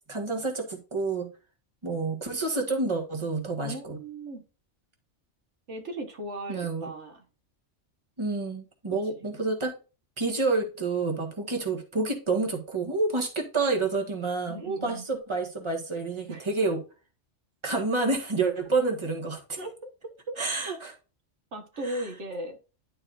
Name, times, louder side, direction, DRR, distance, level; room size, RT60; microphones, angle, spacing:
voice 1, 0.1-1.3 1.8-4.0 6.5-6.9 8.2-9.7 10.2-16.8 17.6-19.6 20.4-20.9 21.8-22.0, right 3 dB, 25° right, 1.6 m, -28 dB
voice 2, 3.6-4.4 5.7-7.2 14.5-15.1 16.3-16.5 19.6-20.4 21.5-22.6, right 1 dB, 80° right, 1.7 m, -37 dB
11.0 x 4.7 x 2.5 m
omnidirectional pair, 1.2 m